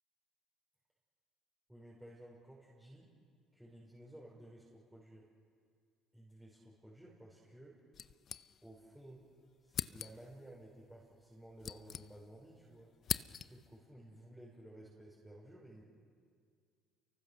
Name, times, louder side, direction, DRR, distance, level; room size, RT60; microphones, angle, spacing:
voice 1, 1.7-3.1 3.5-5.3 6.1-7.8 8.6-9.2 9.6-12.9 13.4-15.8, right 1 dB, 5° right, -5 dB, 5.2 m, -55 dB
sound 1, 7.9-8.9 9.2-9.3 9.7-10.4 11.2-12.5 12.8-13.8, left 8 dB, 50° left, 0.6 m, -42 dB
29.5 x 24.0 x 6.4 m, 2.2 s
supercardioid pair, 85°, 0 cm